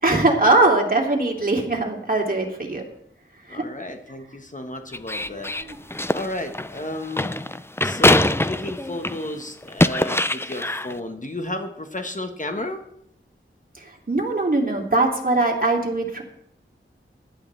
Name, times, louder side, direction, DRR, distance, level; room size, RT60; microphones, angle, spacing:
voice 1, 0.0-2.8 3.5-3.6 5.2-5.8 13.8-16.2, right 2 dB, 45° right, 0 dB, 2.8 m, -21 dB
voice 2, 3.5-5.5 6.1-7.4 7.8-12.8, left 1 dB, 35° left, 5 dB, 1.3 m, -32 dB
sound 1, 4.9-9.3 9.6-10.9, left 1 dB, 10° left, 0.5 m, -22 dB
16.5 x 11.5 x 3.4 m, 0.76 s
wide cardioid pair, 55°, 21 cm